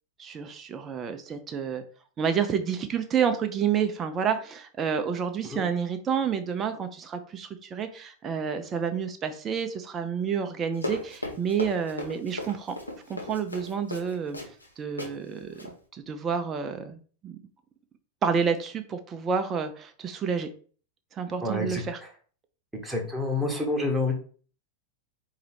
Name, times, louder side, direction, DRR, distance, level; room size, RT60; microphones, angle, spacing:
voice 1, 0.2-1.8 2.2-12.8 13.1-14.4 14.8-15.6 15.9-17.0 17.2-17.4 18.2-20.5 21.1-22.0, right 7 dB, 25° right, 7 dB, 0.4 m, -29 dB
Run, 10.7-14.7 15.0-15.1 15.5-15.7, left 1 dB, 85° left, 0.8 m, -36 dB
voice 2, 21.4-21.8 22.7-24.2, left 2 dB, 5° right, 0 dB, 1.0 m, -28 dB
4.7 x 2.7 x 3.3 m, 0.42 s
figure-of-eight pair, 90°, 0 cm